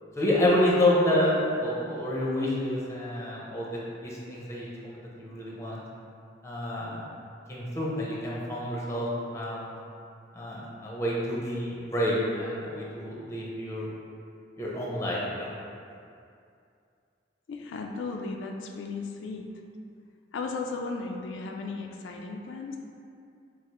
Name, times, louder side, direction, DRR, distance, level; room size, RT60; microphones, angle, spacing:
voice 1, 0.2-1.3 1.6-3.7 4.0-5.8 6.4-7.0 7.5-9.1 9.3-9.8 10.3-13.9 14.6-15.5, left 1 dB, 15° left, -5 dB, 0.7 m, -28 dB
voice 2, 17.5-19.5 20.3-22.8, left 3 dB, 85° left, 2 dB, 0.3 m, -35 dB
4.8 x 2.0 x 4.2 m, 2.5 s
head